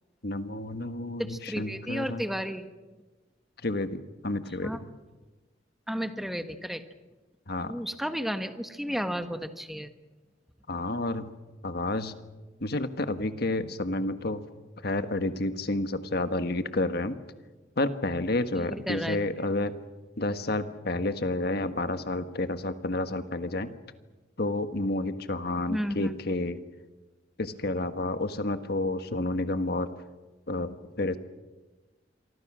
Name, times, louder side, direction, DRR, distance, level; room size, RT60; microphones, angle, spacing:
voice 1, 0.2-2.2 3.6-4.9 7.5-7.8 10.7-11.3 11.6-12.1 12.6-14.4 14.8-17.2 17.8-19.7 20.2-23.7 24.4-26.6 27.4-29.9 30.5-31.2, left 2 dB, 60° left, 9 dB, 1.5 m, -30 dB
voice 2, 1.2-2.7 4.6-4.8 5.9-6.8 7.6-9.9 18.5-19.2 25.7-26.2, equal, ahead, 8 dB, 1.4 m, -33 dB
27.5 x 24.5 x 6.2 m, 1.2 s
head